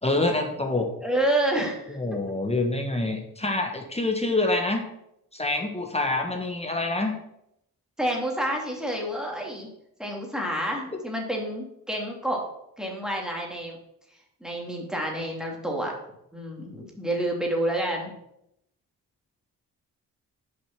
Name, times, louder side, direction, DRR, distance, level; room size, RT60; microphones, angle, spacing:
voice 1, 0.0-0.9 1.9-4.8 5.3-7.2, left 2 dB, 15° left, 3 dB, 1.4 m, -26 dB
voice 2, 1.0-2.0 8.0-9.7 10.0-12.4 12.8-13.8 14.4-15.9 16.3-18.1, right 1 dB, ahead, -1 dB, 2.7 m, -28 dB
6.8 x 5.3 x 6.0 m, 0.80 s
cardioid pair, 65°, 37 cm